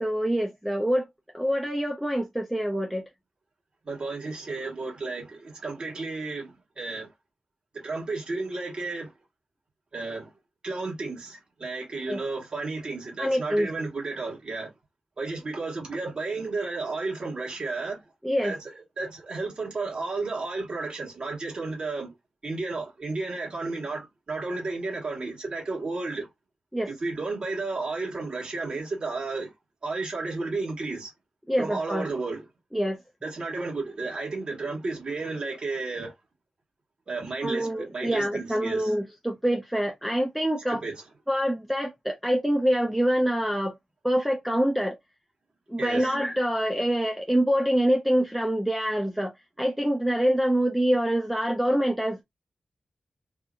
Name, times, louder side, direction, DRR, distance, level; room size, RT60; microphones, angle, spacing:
voice 1, 0.0-1.0 1.3-3.0 12.1-12.2 13.2-13.7 18.2-18.5 26.7-26.9 31.5-32.0 32.7-33.0 37.4-40.8 41.3-43.7 44.0-45.0 45.7-49.3 49.6-52.2, equal, ahead, 0.4 m, -25 dB
voice 2, 3.9-7.1 7.8-9.1 9.9-10.3 10.6-14.7 15.2-18.0 18.4-22.1 22.4-26.3 26.9-29.5 29.8-31.1 31.6-32.4 33.2-36.1 37.1-38.9 40.7-40.9 45.8-46.1, right 3 dB, 40° right, 1.3 m, -32 dB
2.7 x 2.5 x 2.4 m
wide cardioid pair, 160°, 2 cm